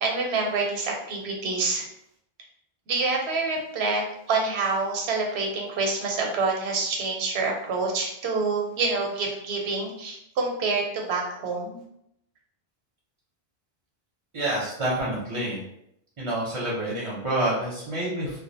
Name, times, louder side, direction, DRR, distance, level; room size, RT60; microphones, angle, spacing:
voice 1, 0.0-1.9 2.9-4.0 4.3-11.8, right 3 dB, 80° right, 1 dB, 0.9 m, -27 dB
voice 2, 14.3-15.6 16.2-18.4, right 1 dB, 35° right, -6 dB, 0.6 m, -28 dB
2.3 x 2.1 x 2.6 m, 0.76 s
omnidirectional pair, 1.1 m